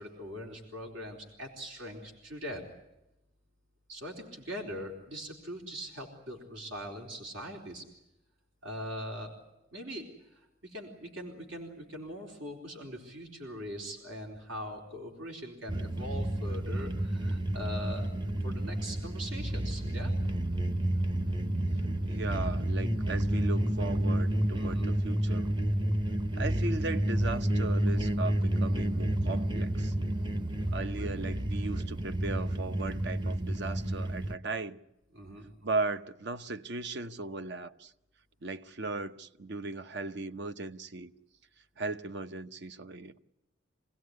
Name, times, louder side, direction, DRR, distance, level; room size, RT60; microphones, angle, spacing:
voice 1, 0.0-2.6 3.9-7.8 8.6-9.3 9.7-10.0 10.3-18.1 18.4-20.1 24.5-24.9 35.1-35.5, equal, 85° right, 4.2 m, -41 dB
sound 1, 15.7-34.3, right 1 dB, 25° right, 0.8 m, -30 dB
voice 2, 22.0-25.5 26.4-29.9 30.7-34.8 35.6-37.9 38.4-41.1 41.8-43.2, right 3 dB, 60° right, 0.9 m, -37 dB
26.0 x 17.0 x 9.6 m
head